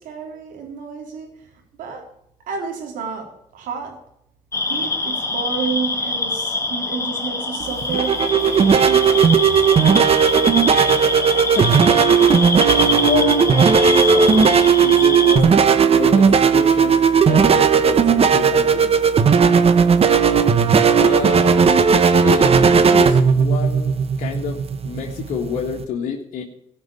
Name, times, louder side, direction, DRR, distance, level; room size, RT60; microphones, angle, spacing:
voice 1, 0.0-1.5 1.8-2.1 2.5-4.0 4.7-8.2 8.6-9.1, right 5 dB, 80° right, 2 dB, 3.6 m, -30 dB
sound 1, 4.5-15.4, left 3 dB, 20° left, 1.9 m, -24 dB
sound 2, 7.6-25.8, right 6 dB, 45° right, 1.2 m, -15 dB
voice 2, 11.4-11.9 12.3-12.5 12.8-15.4 15.9-18.9 20.9-21.6 22.2-26.4, left 7 dB, 70° left, -1 dB, 1.8 m, -28 dB
16.5 x 6.1 x 8.8 m, 0.75 s
cardioid pair, 75°, 14 cm